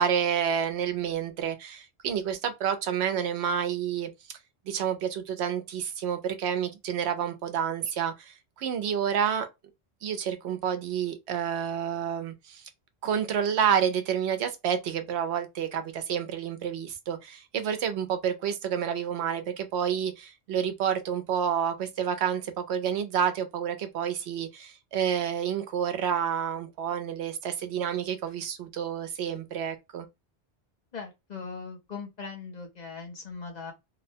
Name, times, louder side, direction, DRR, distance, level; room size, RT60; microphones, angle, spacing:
voice 1, 0.0-4.1 4.7-9.5 10.0-12.7 13.0-30.1, right 8 dB, 85° right, 0.9 m, -29 dB
voice 2, 30.9-33.7, left 5 dB, 45° left, 0.8 m, -39 dB
2.8 x 2.1 x 2.6 m
omnidirectional pair, 1.1 m